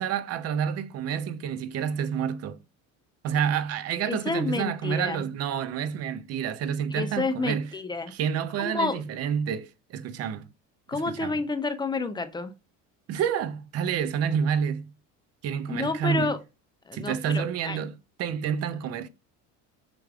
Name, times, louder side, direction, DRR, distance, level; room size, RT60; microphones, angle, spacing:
voice 1, 0.0-2.6 3.2-7.7 8.1-10.5 10.9-11.4 13.1-14.9 15.4-16.3 16.9-17.9 18.2-19.1, right 8 dB, 45° right, 0.5 m, -29 dB
voice 2, 4.1-5.2 6.9-8.1 8.6-9.0 10.9-12.5 15.7-16.4 16.9-17.8, left 3 dB, 15° left, 0.4 m, -29 dB
6.0 x 3.2 x 2.3 m
supercardioid pair, 110°, 36 cm